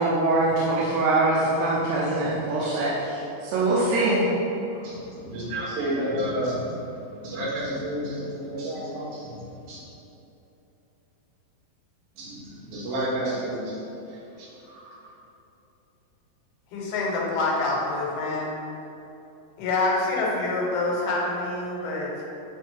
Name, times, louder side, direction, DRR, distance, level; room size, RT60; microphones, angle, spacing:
voice 1, 0.0-4.2, right 2 dB, 85° right, -7 dB, 2.8 m, -23 dB
voice 2, 4.7-9.8 12.1-15.2, right 1 dB, 70° right, -6 dB, 2.9 m, -31 dB
voice 3, 16.7-18.5 19.6-22.2, left 2 dB, 80° left, -3 dB, 3.0 m, -26 dB
9.8 x 3.6 x 3.5 m, 2.9 s
omnidirectional pair, 4.6 m